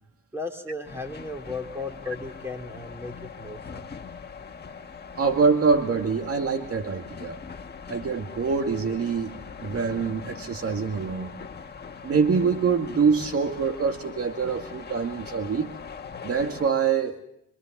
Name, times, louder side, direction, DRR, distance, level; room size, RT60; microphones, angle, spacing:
voice 1, 0.3-3.9, left 2 dB, 10° right, 3 dB, 4.5 m, -35 dB
sound 1, 0.9-16.7, left 5 dB, 35° left, 1.7 m, -41 dB
voice 2, 5.1-7.4 7.9-9.3 9.6-11.3 12.0-15.7 16.2-17.2, right 5 dB, 50° right, 5 dB, 2.1 m, -25 dB
26.0 x 25.0 x 7.3 m, 0.76 s
cardioid pair, 90°, 30 cm